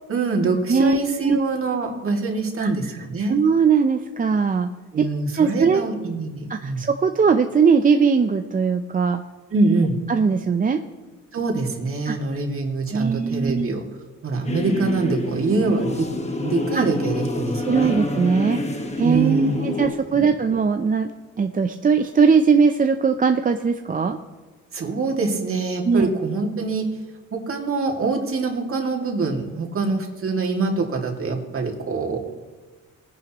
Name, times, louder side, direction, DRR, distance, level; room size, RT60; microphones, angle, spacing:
voice 1, 0.1-3.3 4.9-6.8 9.5-10.0 11.3-13.8 14.2-16.1 16.4-17.9 19.0-19.6 20.1-20.2 24.7-26.9 27.3-32.2, right 3 dB, 45° right, 1 dB, 2.4 m, -24 dB
voice 2, 0.7-1.4 2.6-2.7 3.3-4.7 5.0-5.1 5.4-5.8 6.5-9.2 10.1-10.8 12.1-12.2 12.9-13.7 16.7-16.8 17.6-18.6 19.0-21.1 21.4-24.2 25.9-26.1, right 5 dB, 30° right, 6 dB, 0.6 m, -19 dB
sound 1, 14.4-19.9, left 2 dB, 20° left, 1.4 m, -27 dB
19.5 x 10.0 x 3.0 m, 1.3 s
cardioid pair, 90°, 30 cm